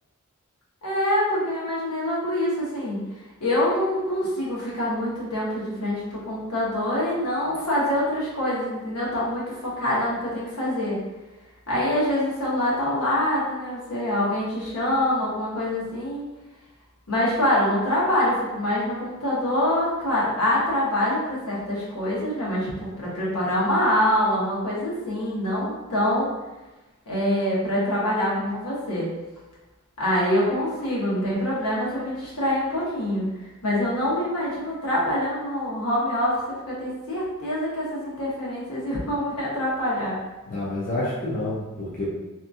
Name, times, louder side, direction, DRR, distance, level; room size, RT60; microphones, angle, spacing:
voice 1, 0.8-3.0 3.4-11.0 11.7-16.2 17.1-26.3 27.1-29.1 30.0-33.3 33.6-36.4 36.7-40.2, left 1 dB, 80° left, -6 dB, 1.0 m, -25 dB
voice 2, 40.5-42.1, left 2 dB, 40° left, -7 dB, 0.5 m, -28 dB
2.8 x 2.5 x 2.3 m, 1.1 s
head